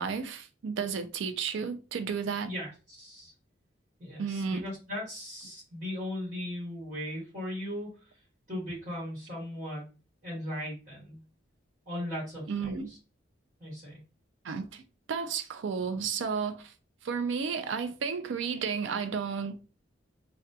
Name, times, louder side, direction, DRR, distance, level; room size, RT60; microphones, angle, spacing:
voice 1, 0.0-2.5 4.2-4.6 12.5-12.9 14.4-14.8 15.1-16.7 17.0-19.6, right 6 dB, 75° right, 0.4 m, -32 dB
voice 2, 2.4-3.3 4.0-8.1 8.5-9.9 10.2-11.2 11.9-13.0 13.6-14.0, left 1 dB, 40° right, 1.3 m, -38 dB
2.7 x 2.2 x 2.2 m
head